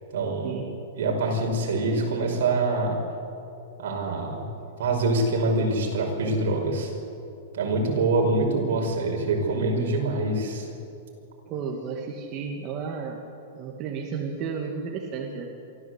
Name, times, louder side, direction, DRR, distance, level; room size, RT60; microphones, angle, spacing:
voice 1, 0.1-0.6 0.9-3.0 3.8-4.5 4.8-6.9 7.5-10.7, right 2 dB, 70° right, 1 dB, 5.6 m, -25 dB
voice 2, 11.5-13.2 13.6-15.5, right 5 dB, 30° right, 1 dB, 1.9 m, -33 dB
24.0 x 14.5 x 8.2 m, 2.6 s
supercardioid pair, 160°, 0 cm